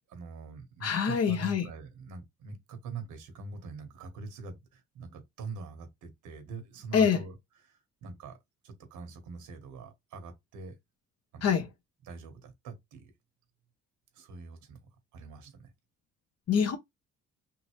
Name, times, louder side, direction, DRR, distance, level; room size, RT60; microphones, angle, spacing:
voice 1, 0.1-7.3 7.6-8.4 8.6-10.7 11.3-11.7 12.1-13.1 14.1-14.8 15.1-15.7, right 4 dB, 80° right, 1.4 m, -44 dB
voice 2, 0.8-1.7 6.9-7.2 11.4-11.7 16.5-16.8, left 7 dB, 55° left, 0.9 m, -25 dB
3.8 x 2.7 x 3.1 m
cardioid pair, 90°, 30 cm